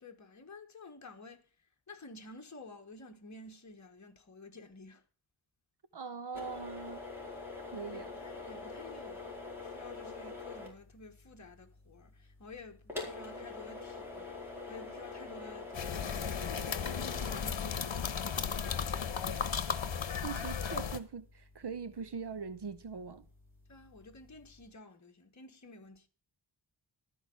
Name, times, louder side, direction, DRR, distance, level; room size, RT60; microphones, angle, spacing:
voice 1, 0.0-5.0 7.9-18.9 23.7-26.1, left 3 dB, 35° left, 1.4 m, -52 dB
voice 2, 5.9-7.0 7.7-8.1 19.4-19.5 20.2-23.3, right 5 dB, 60° right, 0.8 m, -41 dB
sound 1, 6.3-24.7, left 3 dB, 5° right, 4.5 m, -47 dB
sound 2, 15.7-21.0, left 7 dB, 70° left, 1.1 m, -35 dB
13.0 x 4.8 x 8.5 m
wide cardioid pair, 100°, 47 cm